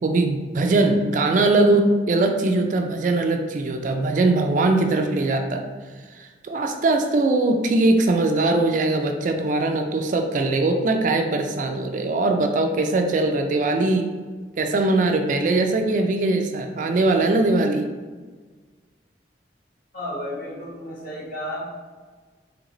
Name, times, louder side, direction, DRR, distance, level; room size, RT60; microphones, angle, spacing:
voice 1, 0.0-5.7 6.1-14.1 14.6-17.9, right 2 dB, 45° right, 4 dB, 0.3 m, -21 dB
voice 2, 19.9-21.6, left 1 dB, 50° left, -6 dB, 1.2 m, -32 dB
3.8 x 3.5 x 3.0 m, 1.4 s
head